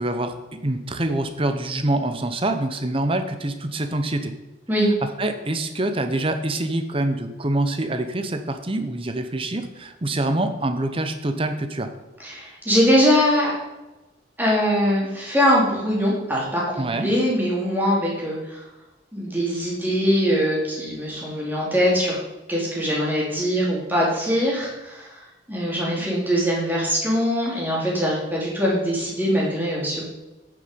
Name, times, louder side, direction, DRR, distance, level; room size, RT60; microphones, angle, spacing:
voice 1, 0.0-4.3 5.2-11.9 16.8-17.1, right 1 dB, 30° right, 8 dB, 0.8 m, -25 dB
voice 2, 12.2-13.5 14.4-18.6 19.1-22.2 22.5-25.2 25.5-30.0, equal, 10° right, -5 dB, 3.0 m, -22 dB
9.2 x 7.0 x 5.2 m, 1.0 s
head